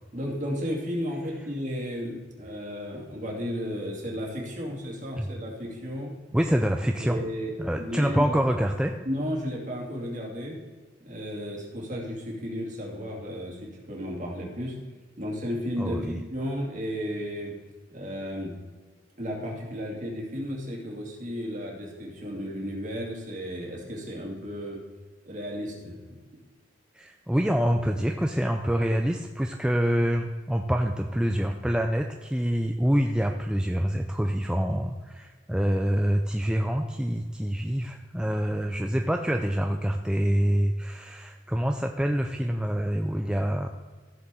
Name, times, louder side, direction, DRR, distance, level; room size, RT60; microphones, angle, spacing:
voice 1, 0.1-6.1 7.0-7.5 7.8-8.4 9.0-10.6 11.0-14.8 15.2-17.5 17.9-18.5 19.2-24.8 25.3-26.2, equal, 40° right, -2 dB, 2.5 m, -33 dB
voice 2, 6.3-7.2 7.6-9.0 15.8-16.2 26.9-43.7, equal, 5° right, 3 dB, 0.4 m, -26 dB
15.5 x 7.0 x 3.8 m, 1.4 s
head